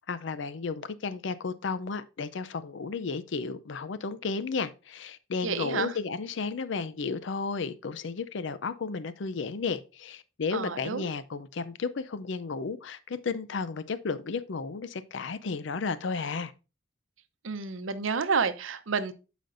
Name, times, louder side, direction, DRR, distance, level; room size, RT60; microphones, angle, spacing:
voice 1, 0.1-16.5, left 4 dB, 65° left, 0.5 m, -33 dB
voice 2, 5.4-5.9 10.5-11.1 17.4-19.1, right 5 dB, 80° right, 0.7 m, -30 dB
11.5 x 5.1 x 2.6 m
head